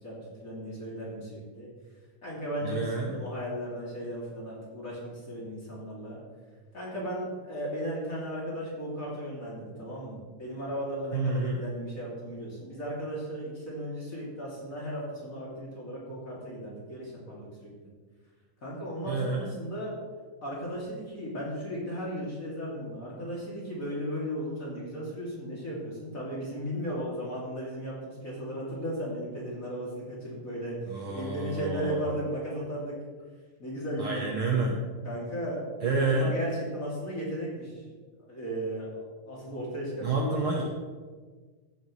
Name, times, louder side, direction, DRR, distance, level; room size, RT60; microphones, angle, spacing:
voice 1, 0.0-1.7 2.2-6.2 6.7-17.7 18.6-20.0 20.4-33.0 33.6-34.4 35.0-37.8 38.2-40.6, equal, 25° left, -5 dB, 2.8 m, -36 dB
voice 2, 2.6-3.2 11.1-11.6 19.1-19.5 30.9-32.1 34.0-34.8 35.8-36.3 40.0-40.6, right 3 dB, 85° right, 0 dB, 1.2 m, -29 dB
15.0 x 9.5 x 3.2 m, 1.4 s
omnidirectional pair, 4.0 m